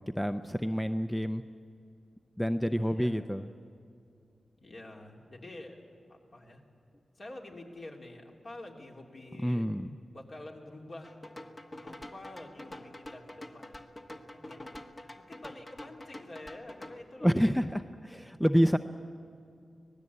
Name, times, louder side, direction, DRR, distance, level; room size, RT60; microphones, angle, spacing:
voice 1, 0.2-1.4 2.4-3.5 9.4-9.9 17.2-18.8, equal, 5° left, 9 dB, 0.5 m, -28 dB
voice 2, 2.8-3.3 4.6-5.8 6.1-6.6 7.2-9.6 10.0-11.2 11.8-13.7 14.3-14.8 15.3-17.6, left 2 dB, 45° left, 0 dB, 3.1 m, -47 dB
sound 1, 11.0-17.0, left 1 dB, 30° left, 1.5 m, -47 dB
25.0 x 19.0 x 8.4 m, 2.5 s
wide cardioid pair, 120°, 0 cm